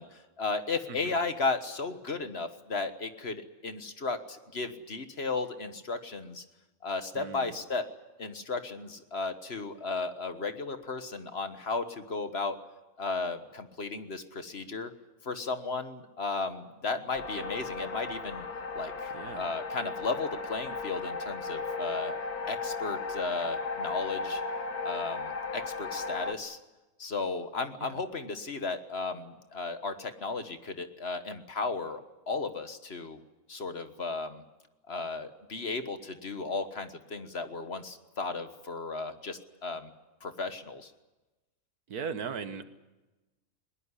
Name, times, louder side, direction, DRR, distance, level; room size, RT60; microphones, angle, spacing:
voice 1, 0.0-6.4 6.8-7.9 8.2-12.6 13.0-14.9 15.2-18.4 18.7-22.1 22.5-24.4 24.8-26.6 27.0-32.0 32.3-33.2 33.5-34.4 34.9-39.9 40.2-40.9, left 3 dB, 45° left, 9 dB, 1.6 m, -35 dB
voice 2, 7.1-7.5 19.1-19.5 27.8-27.9 41.9-42.6, right 6 dB, 85° right, 10 dB, 1.9 m, -38 dB
sound 1, 17.1-26.3, left 4 dB, 85° left, 1.9 m, -36 dB
21.0 x 19.5 x 9.9 m, 1.1 s
omnidirectional pair, 1.6 m